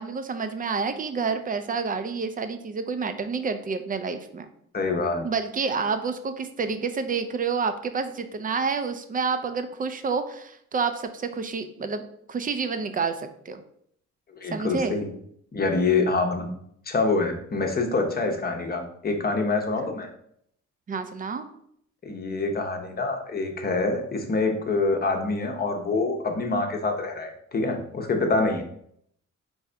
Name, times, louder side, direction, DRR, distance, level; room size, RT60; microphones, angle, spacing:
voice 1, 0.0-4.5 5.2-12.0 12.3-13.6 14.5-15.0 19.8-20.0 20.9-21.5, right 5 dB, 30° right, 9 dB, 0.5 m, -29 dB
voice 2, 4.7-5.2 14.4-15.1 15.5-16.5 16.9-20.1 22.0-28.6, left 3 dB, 30° left, 3 dB, 0.8 m, -26 dB
4.7 x 2.6 x 3.3 m, 0.69 s
cardioid pair, 90°, 30 cm